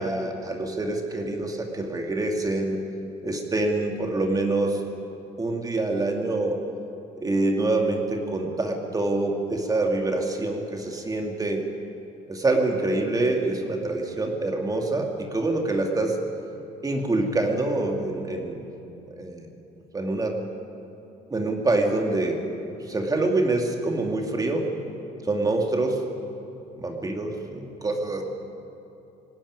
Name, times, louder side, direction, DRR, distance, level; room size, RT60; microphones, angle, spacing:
voice 1, 0.0-2.8 3.2-4.8 5.4-6.6 7.2-11.6 12.3-16.2 16.8-18.6 19.1-19.5 19.9-20.3 21.3-22.4 22.8-24.7 25.2-26.0 26.7-27.3 27.8-28.2, right 2 dB, 20° right, 2 dB, 2.6 m, -25 dB
19.5 x 16.5 x 9.8 m, 2.9 s
cardioid pair, 110°, 17 cm